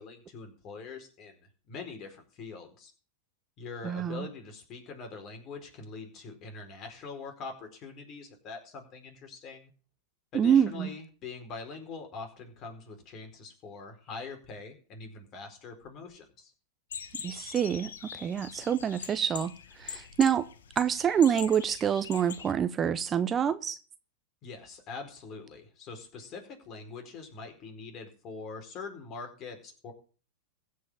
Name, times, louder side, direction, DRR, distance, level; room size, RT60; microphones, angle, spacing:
voice 1, 0.0-2.9 3.6-9.7 10.3-16.5 24.4-29.9, left 4 dB, 40° left, 4.6 m, -43 dB
voice 2, 3.8-4.3 10.3-10.9 17.2-20.5 20.8-23.8, right 8 dB, 25° right, 0.7 m, -27 dB
sound 1, 16.9-22.5, left 7 dB, 80° left, 1.4 m, -43 dB
15.5 x 5.7 x 8.3 m
hypercardioid pair, 115°, 0 cm